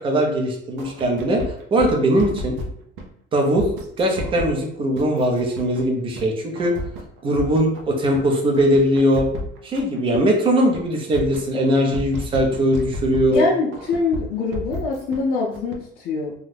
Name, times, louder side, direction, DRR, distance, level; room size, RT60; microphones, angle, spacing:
voice 1, 0.0-2.6 3.3-3.7 4.0-6.7 7.2-9.3 9.6-13.5, equal, 25° right, 1 dB, 0.6 m, -20 dB
sound 1, 0.8-3.1 3.6-4.5 5.0-5.9 6.2-6.3 6.6-7.8 8.1-10.2 10.6-10.8 11.1-13.4 13.7-15.2 15.5-15.8, equal, 75° right, 0.6 m, -32 dB
voice 2, 13.3-16.3, left 4 dB, 50° left, -4 dB, 0.5 m, -24 dB
2.6 x 2.3 x 3.3 m, 0.73 s
cardioid pair, 155°, 20 cm